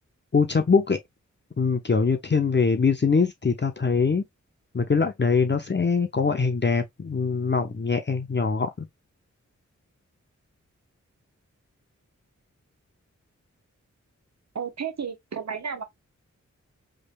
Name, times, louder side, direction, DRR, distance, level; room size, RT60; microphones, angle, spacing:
voice 1, 0.3-1.0 1.6-4.2 4.7-8.9, left 5 dB, 35° left, 0.8 m, -23 dB
voice 2, 14.5-15.8, right 6 dB, 60° right, 1.1 m, -32 dB
5.0 x 3.3 x 2.2 m
cardioid pair, 45°, 30 cm